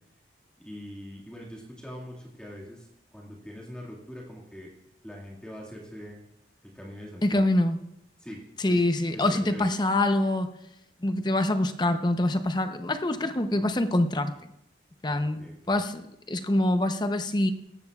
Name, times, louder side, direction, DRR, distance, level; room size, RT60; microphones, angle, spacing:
voice 1, 0.6-4.7 5.0-6.2 6.6-7.4 8.2-8.8 9.1-9.7 15.1-15.8, equal, 5° left, -4 dB, 1.9 m, -43 dB
voice 2, 7.2-7.8 8.6-10.5 11.0-14.4 15.0-16.0 16.3-17.5, left 1 dB, 25° left, 8 dB, 0.7 m, -25 dB
18.0 x 14.0 x 2.4 m, 0.82 s
head